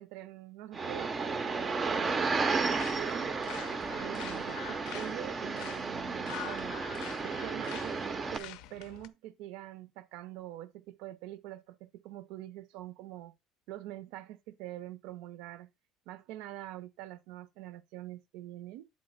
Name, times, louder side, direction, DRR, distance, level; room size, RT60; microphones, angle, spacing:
voice 1, 0.0-3.3 4.0-6.8 7.2-13.3 13.7-15.7 16.1-18.9, right 14 dB, 70° right, 0.5 m, -45 dB
sound 1, 0.7-8.4, right 4 dB, 20° right, 0.4 m, -33 dB
sound 2, 2.6-9.1, left 13 dB, 70° left, 0.5 m, -46 dB
8.8 x 3.7 x 4.0 m
cardioid pair, 170°, 0 cm